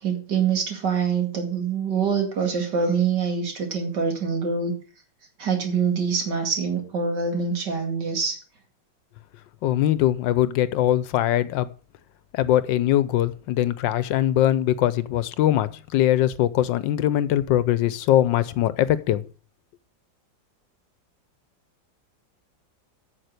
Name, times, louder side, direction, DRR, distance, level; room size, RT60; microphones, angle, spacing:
voice 1, 0.0-4.7 5.4-8.4, right 6 dB, 65° right, 2.9 m, -25 dB
voice 2, 9.6-11.7 12.3-19.2, left 12 dB, 85° left, 1.4 m, -21 dB
8.9 x 6.8 x 6.5 m
omnidirectional pair, 2.0 m